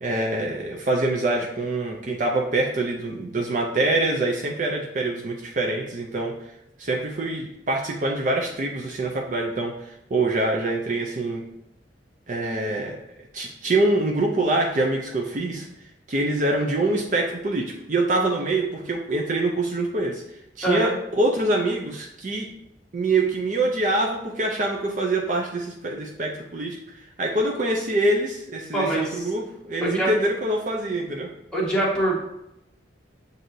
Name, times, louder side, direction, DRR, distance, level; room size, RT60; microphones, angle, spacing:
voice 1, 0.0-6.3 6.8-11.4 12.3-13.0 13.3-15.7 16.1-20.2 20.6-22.5 22.9-31.3, right 2 dB, 40° right, 0 dB, 0.5 m, -25 dB
voice 2, 20.6-21.0 28.7-29.3 29.8-30.1 31.5-32.2, right 1 dB, 5° left, -7 dB, 1.2 m, -24 dB
7.5 x 2.7 x 2.6 m, 0.83 s
head